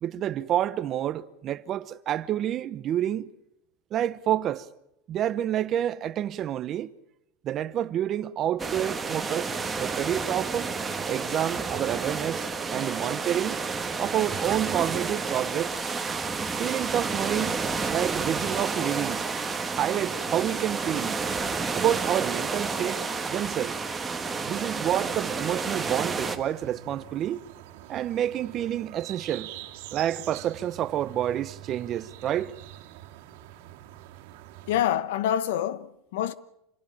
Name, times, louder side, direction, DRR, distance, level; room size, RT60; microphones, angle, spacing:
voice 1, 0.0-3.3 3.9-4.7 5.1-6.9 7.4-9.5 9.8-10.7 11.1-13.6 14.0-15.8 16.6-19.3 19.7-21.2 21.7-23.8 24.4-27.4 27.9-29.5 29.9-32.5, right 11 dB, 35° right, 0.9 m, -28 dB
sound 1, 8.6-26.4, right 4 dB, 10° right, 1.6 m, -30 dB
sound 2, 25.0-34.8, right 12 dB, 70° right, 2.2 m, -45 dB
voice 2, 34.7-36.3, left 11 dB, 80° left, 1.1 m, -26 dB
26.5 x 17.0 x 8.8 m
supercardioid pair, 150°, 0 cm